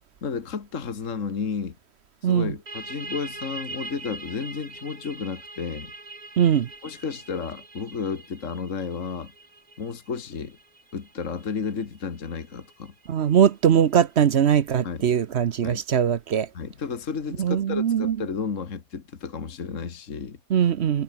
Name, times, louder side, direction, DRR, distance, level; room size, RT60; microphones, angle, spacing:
voice 1, 0.2-1.8 2.2-5.9 6.8-9.3 9.8-10.6 10.9-12.9 14.8-15.1 15.6-15.8 16.5-20.6, left 5 dB, 55° left, 2.1 m, -32 dB
voice 2, 2.2-2.5 6.4-6.7 13.1-16.5 17.4-18.2 20.5-21.0, right 8 dB, 55° right, 0.9 m, -21 dB
sound 1, 2.7-14.0, right 3 dB, 75° right, 5.2 m, -43 dB
omnidirectional pair, 1.6 m